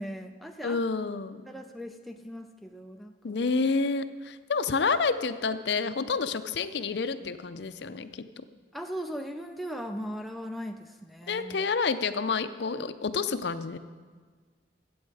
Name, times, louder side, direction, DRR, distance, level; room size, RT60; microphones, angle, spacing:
voice 1, 0.0-0.8 1.5-3.4 8.7-11.6, equal, ahead, 3 dB, 0.4 m, -38 dB
voice 2, 0.6-1.4 3.2-8.2 11.3-13.8, left 4 dB, 60° left, 11 dB, 0.5 m, -29 dB
14.0 x 7.9 x 4.8 m, 1.5 s
head